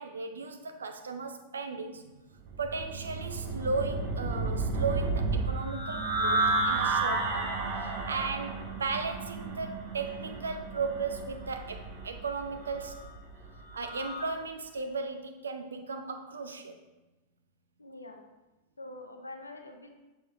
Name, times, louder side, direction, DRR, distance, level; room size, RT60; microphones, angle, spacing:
voice 1, 0.0-2.1 2.6-13.1 13.7-16.8, right 4 dB, 70° right, 6 dB, 0.5 m, -36 dB
sound 1, 2.5-14.3, right 3 dB, 45° right, 1.1 m, -32 dB
voice 2, 17.8-18.2 18.8-19.9, left 2 dB, 80° left, 4 dB, 0.7 m, -45 dB
6.4 x 5.8 x 2.5 m, 1.1 s
figure-of-eight pair, 90°, 0 cm